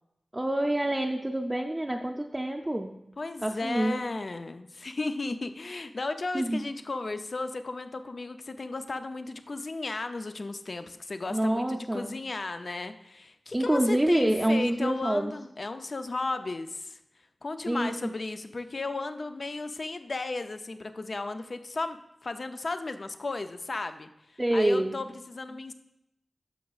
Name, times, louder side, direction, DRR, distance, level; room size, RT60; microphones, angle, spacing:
voice 1, 0.3-2.9 3.4-4.0 6.3-6.6 11.3-12.2 13.5-15.3 17.7-18.1 24.4-24.9, right 1 dB, 20° right, 1 dB, 0.5 m, -27 dB
voice 2, 3.2-17.0 17.4-25.7, left 3 dB, 60° left, 9 dB, 0.5 m, -35 dB
11.0 x 6.1 x 2.4 m, 0.84 s
wide cardioid pair, 60°, 0 cm